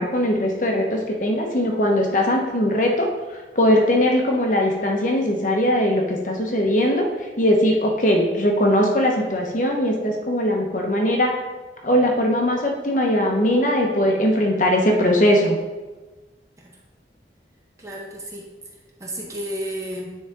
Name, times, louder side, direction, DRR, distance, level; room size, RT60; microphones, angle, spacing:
voice 1, 0.0-7.1 7.4-11.3 11.8-15.6, equal, 45° left, 1 dB, 1.1 m, -20 dB
voice 2, 17.8-18.5 19.0-20.1, equal, 20° right, -2 dB, 1.0 m, -32 dB
9.4 x 4.4 x 3.6 m, 1.2 s
head